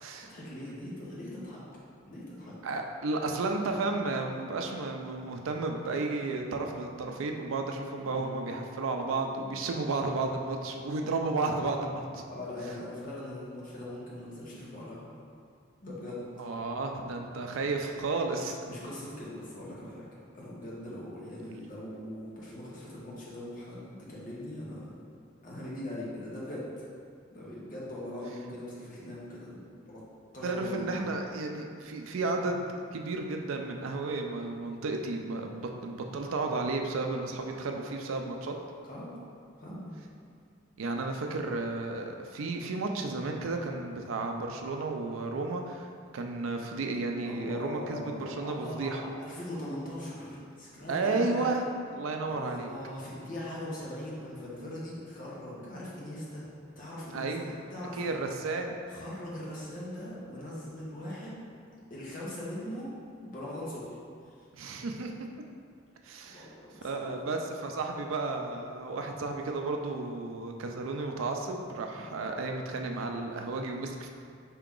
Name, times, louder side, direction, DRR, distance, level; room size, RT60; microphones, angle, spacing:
voice 1, 0.2-1.6 2.0-2.5 8.0-8.4 12.3-15.1 15.8-16.3 18.7-20.1 20.3-25.0 25.4-26.7 27.3-30.0 30.3-31.1 38.8-39.2 39.6-39.9 47.2-51.5 52.3-56.5 56.7-57.3 57.7-58.2 58.9-61.4 61.9-62.9 63.2-64.0 64.3-64.5 66.2-67.1 71.9-72.1, left 1 dB, 40° left, -6 dB, 1.0 m, -41 dB
voice 2, 2.6-12.3 16.4-18.7 21.4-21.6 30.4-32.6 32.9-38.6 40.8-45.9 46.1-49.0 50.9-52.7 57.1-57.5 57.9-58.8 64.5-65.3 66.0-66.5 66.8-74.1, right 3 dB, 80° right, 3 dB, 0.4 m, -33 dB
4.7 x 2.9 x 3.7 m, 2.3 s
head